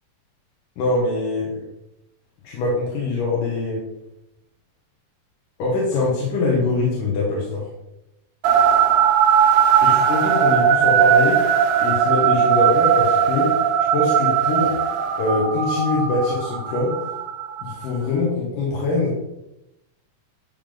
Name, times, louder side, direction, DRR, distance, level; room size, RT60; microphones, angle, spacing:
voice 1, 0.8-1.5 2.4-3.8 5.6-7.7 9.8-11.4 11.8-13.5 13.9-14.7 15.2-16.9 17.6-19.1, left 3 dB, 75° left, -4 dB, 3.0 m, -23 dB
sound 1, 8.4-17.9, right 8 dB, 85° right, 2.6 m, -18 dB
10.5 x 3.6 x 3.7 m, 0.88 s
omnidirectional pair, 3.9 m